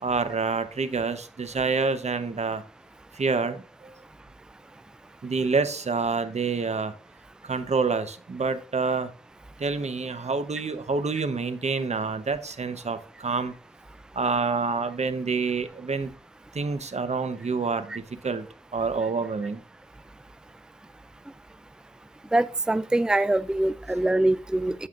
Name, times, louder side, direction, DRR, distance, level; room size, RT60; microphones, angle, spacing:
voice 1, 0.0-2.6 3.1-3.9 5.2-6.9 7.4-9.1 9.6-13.5 14.1-16.1 16.5-18.5 18.7-19.6, right 4 dB, 70° right, 0.9 m, -27 dB
voice 2, 22.3-24.7, right 2 dB, 5° right, 0.4 m, -23 dB
14.5 x 5.6 x 2.5 m
wide cardioid pair, 65°, 12 cm